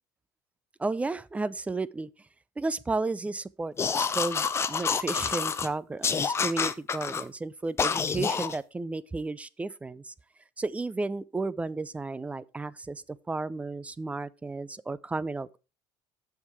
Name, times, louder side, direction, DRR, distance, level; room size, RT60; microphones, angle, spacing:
voice 1, 0.8-2.1 2.6-10.1 10.6-15.6, right 3 dB, 15° right, 0.4 m, -33 dB
sound 1, 3.8-5.7 6.0-7.2 7.8-8.6, left 6 dB, 25° left, 0.7 m, -28 dB
7.1 x 5.8 x 4.6 m
supercardioid pair, 95°, 10 cm